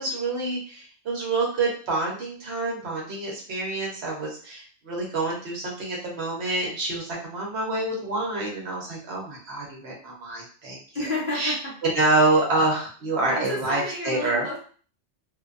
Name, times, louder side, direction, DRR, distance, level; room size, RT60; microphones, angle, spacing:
voice 1, 0.0-10.8 11.3-11.5 11.8-14.5, right 2 dB, 65° right, -2 dB, 0.9 m, -27 dB
voice 2, 10.9-11.8 13.3-14.6, left 1 dB, 45° left, -5 dB, 0.9 m, -30 dB
2.6 x 2.1 x 2.4 m, 0.42 s
omnidirectional pair, 1.3 m